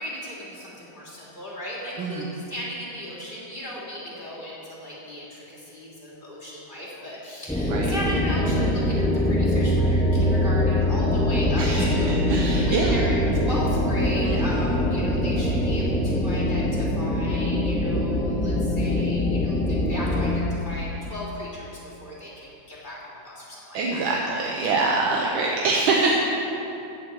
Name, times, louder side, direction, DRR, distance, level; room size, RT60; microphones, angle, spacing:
voice 1, 0.0-24.4 24.6-25.5, left 1 dB, 25° left, -7 dB, 2.9 m, -36 dB
voice 2, 2.0-2.3 7.7-7.9 11.6-13.0 14.3-14.6 23.7-26.2, right 3 dB, 85° right, -1 dB, 1.7 m, -25 dB
sound 1, 7.5-20.4, left 1 dB, 5° left, 0.5 m, -23 dB
15.5 x 8.8 x 4.6 m, 2.9 s
omnidirectional pair, 2.1 m